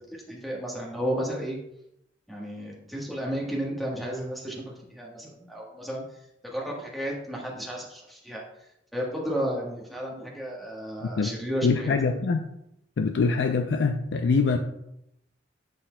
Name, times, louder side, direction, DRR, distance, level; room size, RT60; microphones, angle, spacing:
voice 1, 0.1-1.6 2.3-6.2 6.4-12.0, equal, ahead, -3 dB, 1.3 m, -33 dB
voice 2, 11.6-12.4 13.0-14.6, left 4 dB, 70° left, 6 dB, 0.4 m, -24 dB
11.5 x 4.2 x 2.2 m, 0.81 s
head